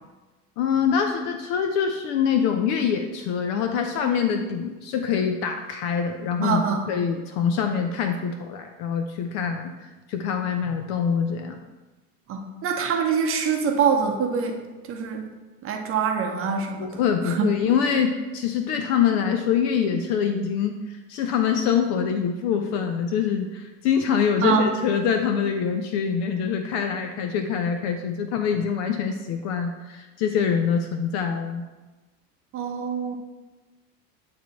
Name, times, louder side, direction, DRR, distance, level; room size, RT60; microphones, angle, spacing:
voice 1, 0.6-9.7 10.1-11.6 16.8-31.7, left 7 dB, 35° left, 6 dB, 0.5 m, -24 dB
voice 2, 6.4-6.9 12.3-14.6 14.9-15.2 15.6-17.5 24.4-24.7 32.5-33.2, right 6 dB, 25° right, 3 dB, 0.8 m, -25 dB
8.7 x 3.5 x 4.0 m, 1.2 s
figure-of-eight pair, 80°, 48 cm